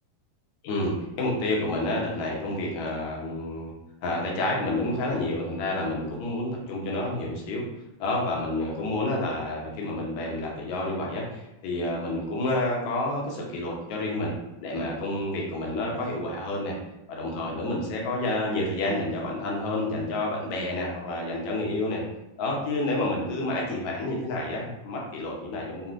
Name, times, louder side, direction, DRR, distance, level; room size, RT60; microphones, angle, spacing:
voice 1, 0.6-3.7 4.0-7.6 8.0-14.3 14.6-16.8 17.1-22.0 22.4-25.9, left 2 dB, 75° left, -2 dB, 1.9 m, -29 dB
5.6 x 2.1 x 2.4 m, 0.96 s
omnidirectional pair, 3.9 m